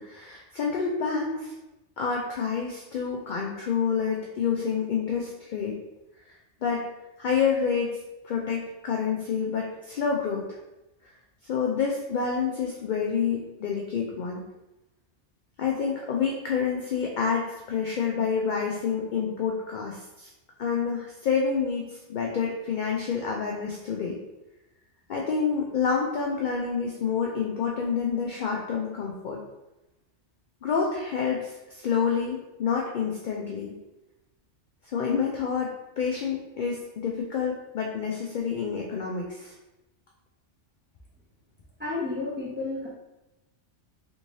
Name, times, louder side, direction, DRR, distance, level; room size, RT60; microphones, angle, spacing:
voice 1, 0.0-1.5 2.0-5.8 6.6-6.9 7.2-8.0 8.2-10.6 11.4-14.4 15.6-20.3 20.6-24.2 25.1-29.4 30.6-33.7 34.8-39.5, left 6 dB, 60° left, -1 dB, 0.5 m, -28 dB
voice 2, 41.8-42.9, left 3 dB, 10° right, -9 dB, 1.0 m, -31 dB
3.5 x 3.1 x 2.7 m, 0.97 s
omnidirectional pair, 1.2 m